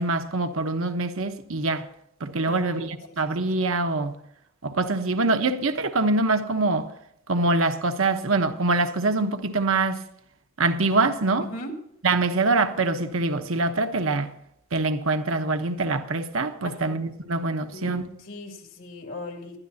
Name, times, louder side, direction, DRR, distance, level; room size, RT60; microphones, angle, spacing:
voice 1, 0.0-1.9 2.2-4.1 4.6-6.9 7.3-10.0 10.6-11.5 12.0-14.3 14.7-18.1, right 3 dB, 75° right, 1.1 m, -24 dB
voice 2, 2.4-2.9 3.2-3.4 11.4-11.7 16.6-17.0 17.7-19.6, left 2 dB, 70° left, 2.4 m, -38 dB
20.0 x 12.5 x 2.8 m
head